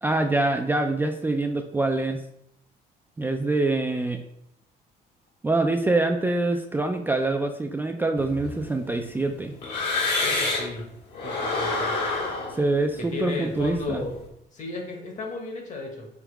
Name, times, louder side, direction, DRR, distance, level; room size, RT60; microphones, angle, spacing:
voice 1, 0.0-2.2 3.2-4.2 5.4-9.5 12.5-14.0, right 2 dB, 10° right, 4 dB, 0.3 m, -25 dB
sound 1, 8.2-10.8 11.1-14.2, left 3 dB, 75° left, 1.7 m, -29 dB
voice 2, 10.2-10.9 11.2-12.0 13.0-14.2 14.5-16.1, left 3 dB, 45° left, 2 dB, 1.2 m, -34 dB
3.6 x 2.9 x 4.6 m, 0.75 s
cardioid pair, 110°, 17 cm